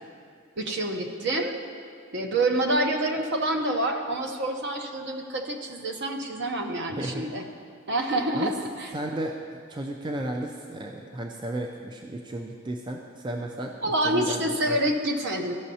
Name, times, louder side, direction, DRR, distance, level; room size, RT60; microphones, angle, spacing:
voice 1, 0.6-1.6 2.1-7.5 7.9-8.9 13.8-15.5, right 1 dB, 55° right, 3 dB, 0.8 m, -27 dB
voice 2, 6.9-7.2 8.3-8.5 8.9-13.7 14.0-14.8, right 1 dB, 20° right, 1 dB, 0.4 m, -34 dB
14.5 x 6.3 x 2.8 m, 2.2 s
head